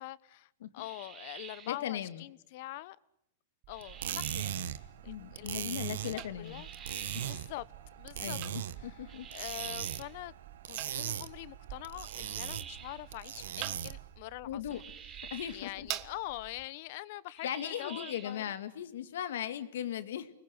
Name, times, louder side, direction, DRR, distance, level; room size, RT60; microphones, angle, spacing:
voice 1, 0.0-3.0 3.7-6.9 7.2-7.7 8.0-8.4 8.8-10.3 10.6-15.1 15.5-18.4, left 17 dB, 55° left, 1.2 m, -44 dB
sound 1, 0.8-1.8 3.7-4.7 6.4-7.5 9.1-10.2 12.0-13.1 14.7-15.7 17.4-18.4, right 8 dB, 25° right, 3.6 m, -49 dB
voice 2, 1.7-2.2 5.1-6.6 7.1-7.2 8.2-9.3 14.4-14.8 15.3-15.9 17.4-20.3, left 10 dB, 80° left, 2.3 m, -38 dB
sound 2, 3.6-16.6, right 15 dB, 40° right, 1.5 m, -48 dB
sound 3, 3.8-14.1, right 10 dB, 80° right, 1.4 m, -40 dB
29.5 x 21.0 x 9.5 m
hypercardioid pair, 135°, 0 cm